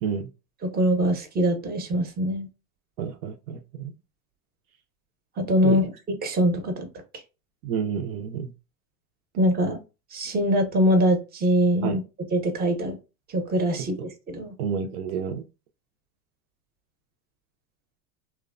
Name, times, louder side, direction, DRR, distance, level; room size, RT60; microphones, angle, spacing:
voice 1, 0.6-2.5 5.4-6.9 9.4-9.8 10.1-12.0 12.3-13.0 13.3-14.5, equal, 20° right, 0.7 m, -23 dB
voice 2, 3.0-3.9 5.6-5.8 7.6-8.5 11.8-12.0 14.6-15.4, right 7 dB, 65° right, 0.6 m, -29 dB
3.0 x 2.1 x 2.4 m
hypercardioid pair, 105°, 46 cm